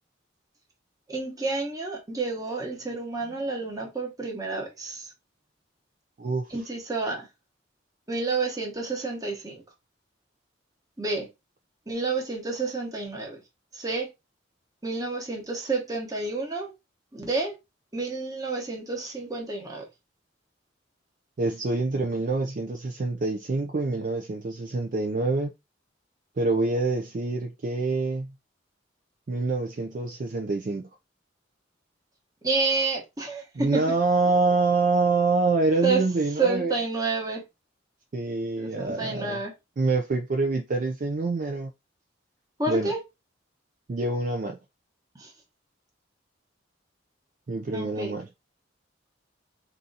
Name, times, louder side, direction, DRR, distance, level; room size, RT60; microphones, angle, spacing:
voice 1, 1.1-5.1 6.5-7.3 8.1-9.6 11.0-11.3 11.9-13.4 13.7-14.1 14.8-16.7 17.1-17.5 17.9-19.8 32.4-34.0 35.8-36.0 36.4-37.4 38.6-39.5 42.6-43.0 45.2-45.3 47.7-48.1, right 3 dB, 20° right, 1.0 m, -29 dB
voice 2, 21.4-25.5 26.4-28.3 29.3-30.8 33.6-36.8 38.1-39.4 39.8-41.7 42.7-42.9 43.9-44.6 47.5-48.3, right 3 dB, 45° right, 0.4 m, -26 dB
2.8 x 2.5 x 3.8 m
head